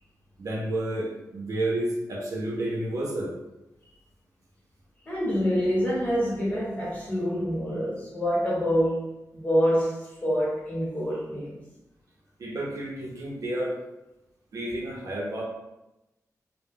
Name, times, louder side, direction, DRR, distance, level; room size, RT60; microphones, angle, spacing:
voice 1, 0.4-3.4 12.4-13.8 14.5-15.4, right 1 dB, 65° right, 0.6 m, -30 dB
voice 2, 5.1-11.6, equal, 25° left, 0.8 m, -26 dB
2.2 x 2.1 x 3.4 m
wide cardioid pair, 175°, 6 cm